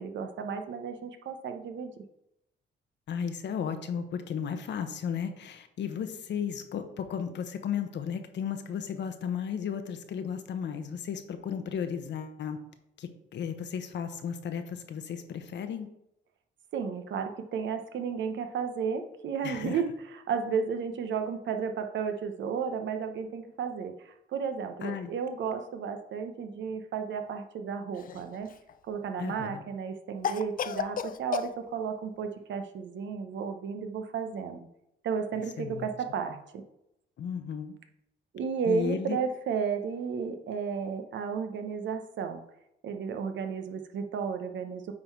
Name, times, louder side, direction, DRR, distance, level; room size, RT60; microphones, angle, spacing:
voice 1, 0.0-2.0 16.7-28.5 28.9-34.7 35.0-36.6 38.3-42.4 42.8-44.9, right 6 dB, 70° right, 7 dB, 0.9 m, -33 dB
voice 2, 3.1-12.6 13.0-15.9 19.4-19.8 24.8-25.1 29.2-29.6 35.6-35.9 37.2-37.7 38.7-39.2, left 7 dB, 65° left, 8 dB, 1.0 m, -34 dB
Cough, 27.9-28.7 30.2-31.5, left 8 dB, 45° left, 0.5 m, -33 dB
8.7 x 3.9 x 4.6 m, 0.82 s
cardioid pair, 90°, 20 cm